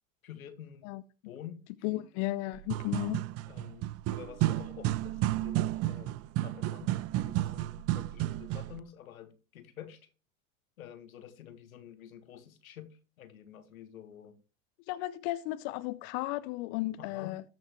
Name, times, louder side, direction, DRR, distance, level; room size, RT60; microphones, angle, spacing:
voice 1, 0.2-0.9 1.2-1.6 1.9-2.1 3.5-6.1 6.4-10.1 10.8-14.4 17.0-17.4, left 10 dB, 85° left, 1.5 m, -49 dB
voice 2, 1.8-3.2 14.9-17.4, left 17 dB, 55° left, 0.7 m, -34 dB
sound 1, 2.5-8.8, right 15 dB, 40° right, 0.5 m, -32 dB
13.5 x 6.0 x 3.1 m
hypercardioid pair, 95°, 41 cm